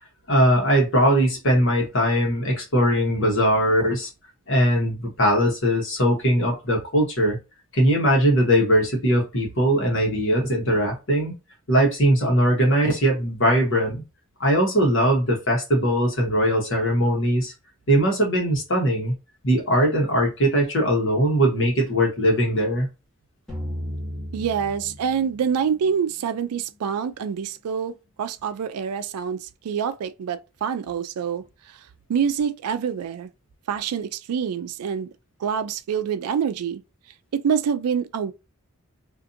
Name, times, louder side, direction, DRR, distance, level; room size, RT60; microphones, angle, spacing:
voice 1, 0.3-4.1 4.5-7.4 7.7-11.3 11.7-14.0 14.4-17.5 17.9-19.1 19.4-22.9, equal, 55° left, 1.1 m, -20 dB
sound 1, 23.5-26.4, equal, 5° left, 1.1 m, -35 dB
voice 2, 24.3-31.8 32.1-33.3 33.7-35.1 35.4-36.8 37.3-38.3, right 7 dB, 85° right, 0.3 m, -26 dB
2.5 x 2.5 x 2.6 m
head